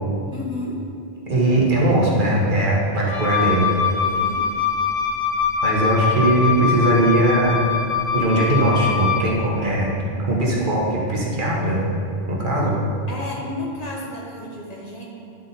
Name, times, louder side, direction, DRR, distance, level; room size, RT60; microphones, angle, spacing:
voice 1, 0.3-0.8 4.0-4.5 13.1-15.0, left 2 dB, 40° left, -3 dB, 1.1 m, -32 dB
voice 2, 1.3-3.7 5.6-7.6 8.1-9.9 10.2-11.9 12.3-12.8, right 1 dB, 55° right, -4 dB, 1.4 m, -19 dB
Wind instrument woodwind instrument, 3.0-9.3, left 6 dB, 10° left, 1.3 m, -23 dB
10.0 x 4.2 x 3.9 m, 2.6 s
omnidirectional pair, 1.0 m